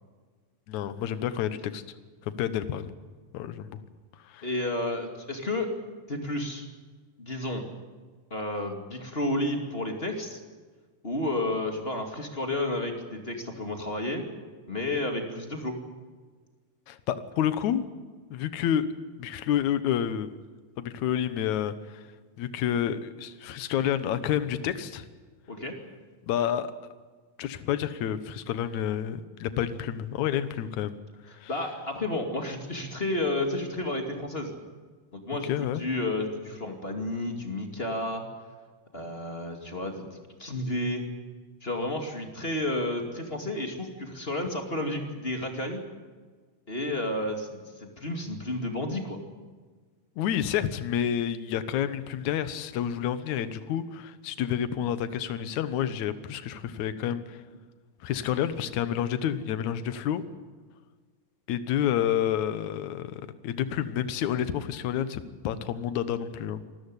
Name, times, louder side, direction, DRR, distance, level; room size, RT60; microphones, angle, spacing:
voice 1, 0.7-1.8 2.2-2.9 3.3-3.8 4.2-4.5 16.9-17.8 18.3-18.9 19.2-20.4 20.8-22.1 22.4-25.1 26.3-26.7 27.4-31.0 31.3-31.5 35.5-35.8 50.2-57.4 58.0-60.2 61.5-66.6, left 10 dB, 65° left, 12 dB, 2.1 m, -29 dB
voice 2, 4.4-5.7 6.1-6.7 7.2-7.6 8.3-10.4 11.0-14.2 14.7-15.8 25.5-25.8 31.5-34.5 35.1-38.3 38.9-40.0 40.4-41.0 41.6-45.8 46.7-49.2, left 1 dB, 20° left, 3 dB, 1.8 m, -31 dB
26.0 x 13.5 x 9.8 m, 1.4 s
omnidirectional pair, 4.3 m